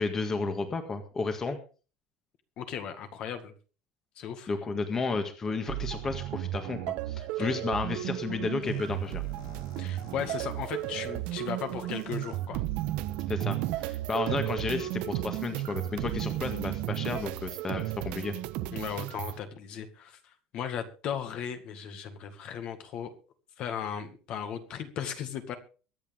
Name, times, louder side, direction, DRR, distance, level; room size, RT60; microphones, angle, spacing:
voice 1, 0.0-1.6 4.5-9.2 13.3-18.3, left 4 dB, 20° left, 7 dB, 1.7 m, -32 dB
voice 2, 2.6-3.5 4.2-4.5 7.4-7.6 9.8-12.6 18.7-23.1 23.6-25.6, left 8 dB, 45° left, 8 dB, 2.0 m, -36 dB
sound 1, 5.7-19.4, right 15 dB, 65° right, 1.1 m, -34 dB
sound 2, 8.6-12.4 13.1-13.2 14.1-16.6, left 9 dB, 80° left, 3.0 m, -53 dB
23.0 x 8.5 x 3.7 m, 0.36 s
cardioid pair, 155°, 2 cm